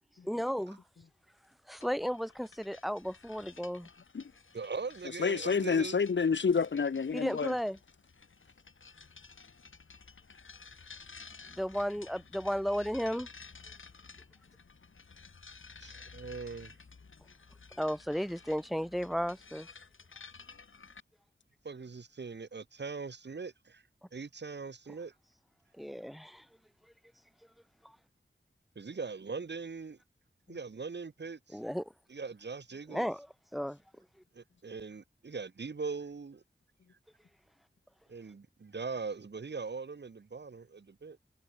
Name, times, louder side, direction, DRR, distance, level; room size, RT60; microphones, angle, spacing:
voice 1, 0.2-0.8 1.7-3.9 7.1-7.8 11.5-13.3 17.8-19.7 25.7-26.5 27.8-28.0 31.5-31.9 32.9-33.3 33.5-33.8, equal, ahead, 1.2 m, -34 dB
sound 1, 1.8-21.0, left 4 dB, 80° left, 3.4 m, -54 dB
voice 2, 4.5-6.0 15.8-16.8 21.6-23.8 24.1-25.1 28.7-30.0 30.5-31.6 32.1-33.1 34.3-36.4 38.1-41.2, right 4 dB, 60° right, 1.3 m, -41 dB
voice 3, 5.2-7.5 30.5-30.6, left 5 dB, 65° left, 0.9 m, -29 dB
cardioid pair, 45°, 20 cm